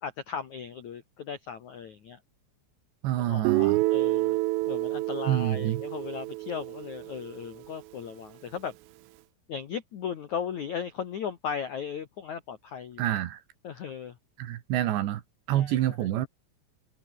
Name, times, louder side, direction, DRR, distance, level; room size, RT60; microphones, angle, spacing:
voice 1, 0.0-2.2 3.2-4.4 4.7-8.7 9.5-13.0 13.6-14.2 15.5-15.8, left 7 dB, 70° left, 1.8 m, -37 dB
voice 2, 3.0-3.8 5.3-5.8 13.0-13.4 14.4-15.2 15.5-16.3, right 13 dB, 70° right, 3.4 m, -27 dB
Guitar, 3.5-7.4, right 20 dB, 85° right, 3.3 m, -28 dB
omnidirectional pair, 5.9 m